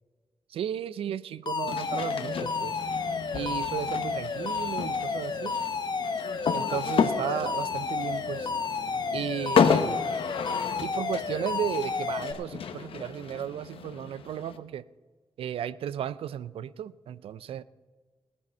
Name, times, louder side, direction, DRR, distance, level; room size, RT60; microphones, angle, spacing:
voice 1, 0.5-2.8 3.3-5.5 6.5-8.5 9.1-10.0 10.8-14.8 15.4-17.6, right 10 dB, 80° right, 16 dB, 0.4 m, -34 dB
Alarm, 1.5-12.3, left 4 dB, 50° left, 1.0 m, -31 dB
sound 1, 1.7-14.6, left 6 dB, 75° left, 0.9 m, -32 dB
17.0 x 9.3 x 5.5 m, 1.4 s
cardioid pair, 75°, 9 cm